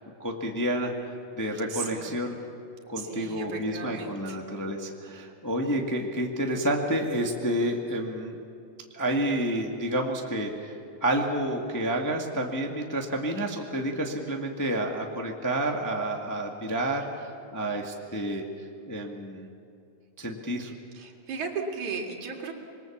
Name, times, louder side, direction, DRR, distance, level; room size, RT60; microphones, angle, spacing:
voice 1, 0.2-2.4 2.9-8.4 8.9-10.7 11.0-18.4 18.9-19.5 20.2-20.7, right 1 dB, 10° left, 1 dB, 1.1 m, -29 dB
voice 2, 1.7-2.2 3.0-4.4 20.9-22.5, right 5 dB, 75° right, 1 dB, 3.7 m, -35 dB
26.5 x 22.0 x 7.3 m, 2.5 s
omnidirectional pair, 3.4 m